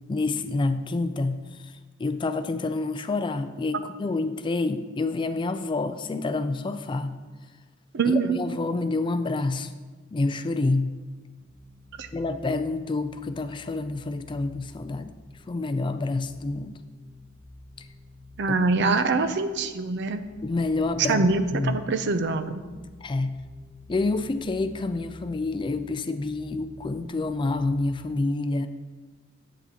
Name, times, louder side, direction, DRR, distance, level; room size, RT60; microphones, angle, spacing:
voice 1, 0.1-1.4 2.0-7.2 8.0-9.7 10.1-11.0 12.1-15.1 15.5-16.8 20.4-21.3 21.5-21.8 23.0-23.4 23.9-28.7, left 3 dB, 25° left, 10 dB, 0.3 m, -28 dB
voice 2, 7.9-8.4 12.0-12.1 18.4-20.2 21.1-22.6, right 3 dB, 60° right, 10 dB, 0.6 m, -24 dB
sound 1, 11.4-27.7, left 1 dB, 25° right, 1.2 m, -50 dB
10.5 x 8.2 x 2.9 m, 1.3 s
head